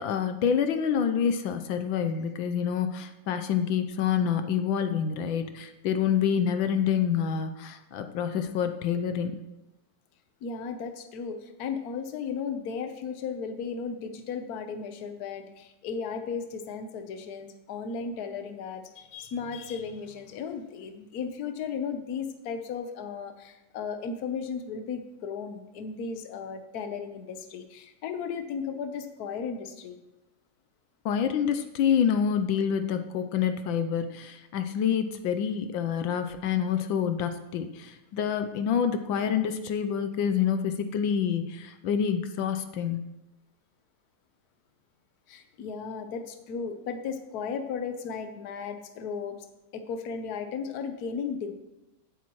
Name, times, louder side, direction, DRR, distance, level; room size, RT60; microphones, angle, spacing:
voice 1, 0.0-9.4 31.0-43.1, left 8 dB, 85° left, 8 dB, 1.4 m, -27 dB
voice 2, 10.4-30.0 45.3-49.4 49.7-51.5, left 6 dB, 60° left, 7 dB, 1.3 m, -35 dB
15.5 x 8.2 x 3.1 m, 0.96 s
omnidirectional pair, 2.1 m